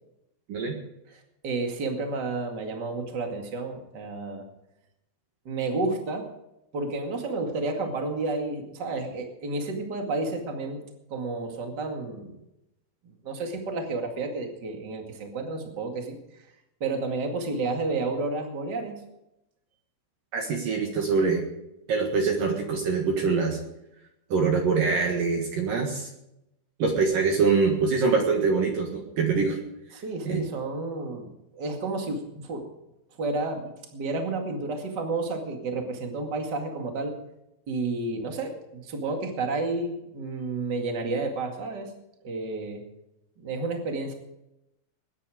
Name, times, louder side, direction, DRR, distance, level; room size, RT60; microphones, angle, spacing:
voice 1, 1.4-4.5 5.4-6.3 6.7-10.8 11.1-12.4 13.2-16.2 16.8-18.9 29.9-32.7 33.2-37.1 37.7-41.9 42.2-42.8 43.4-44.1, right 3 dB, 40° right, 3 dB, 1.6 m, -31 dB
voice 2, 20.3-21.4 21.9-23.6 24.3-26.1 26.8-29.6 30.3-30.4, right 4 dB, 60° right, 1 dB, 2.8 m, -24 dB
20.5 x 10.0 x 5.0 m, 0.87 s
omnidirectional pair, 5.4 m